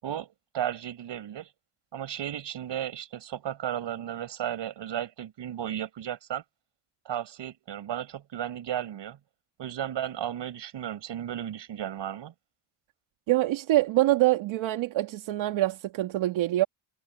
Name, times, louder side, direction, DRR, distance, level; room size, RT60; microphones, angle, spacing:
voice 1, 0.0-1.5 1.9-6.4 7.0-9.2 9.6-12.3, right 10 dB, 65° right, 6.3 m, -34 dB
voice 2, 13.3-16.6, right 16 dB, 85° right, 2.5 m, -25 dB
cardioid pair, 90°, 46 cm